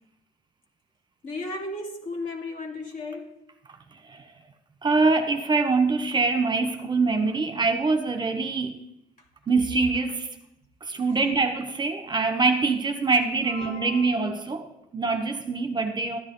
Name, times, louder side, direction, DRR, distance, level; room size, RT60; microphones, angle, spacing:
voice 1, 1.2-3.4 9.2-9.3 13.4-14.4, left 2 dB, 55° left, 2.5 m, -35 dB
voice 2, 3.9-4.3 4.8-8.8 9.5-10.3 10.8-16.2, right 3 dB, 25° right, 1.0 m, -24 dB
13.0 x 10.5 x 3.9 m
cardioid pair, 110°, 17 cm